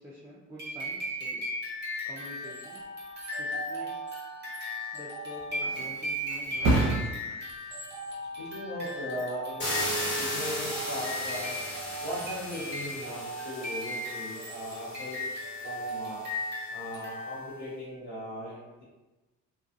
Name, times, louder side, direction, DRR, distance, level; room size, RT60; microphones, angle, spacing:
voice 1, 0.0-1.5 2.0-2.8 3.4-4.0 4.9-6.8, equal, 5° right, -7 dB, 0.5 m, -47 dB
sound 1, 0.6-17.6, left 1 dB, 35° right, 1.2 m, -37 dB
Thump thud, 5.0-12.5 12.9-13.3, right 2 dB, 60° right, 0.7 m, -34 dB
voice 2, 6.3-6.9 7.3-7.4 8.4-9.6 10.1-11.6 12.0-16.2 16.7-18.8, equal, 75° left, -11 dB, 1.0 m, -39 dB
sound 2, 9.6-16.4, equal, 40° left, 1.2 m, -36 dB
2.6 x 2.3 x 2.5 m, 1.1 s
cardioid pair, 90°, 30 cm